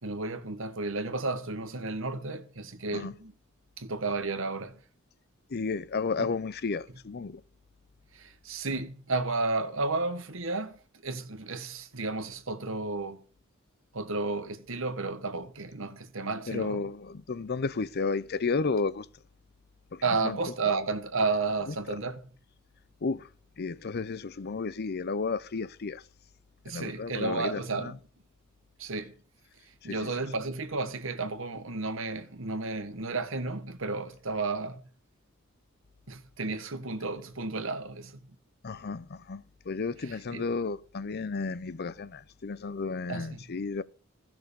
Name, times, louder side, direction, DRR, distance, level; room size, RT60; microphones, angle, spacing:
voice 1, 0.0-3.3 3.8-4.8 6.2-6.3 8.1-13.2 13.9-16.8 20.0-22.2 26.6-28.0 28.8-29.1 29.8-34.8 36.1-38.2 40.0-40.4 43.1-43.4, right 3 dB, 65° right, 1.5 m, -32 dB
voice 2, 5.5-7.4 16.5-19.1 19.9-20.4 21.7-22.0 23.0-23.3 23.6-26.0 26.7-28.0 29.8-30.2 38.6-43.8, left 4 dB, 50° left, 0.6 m, -33 dB
13.5 x 6.2 x 6.8 m
head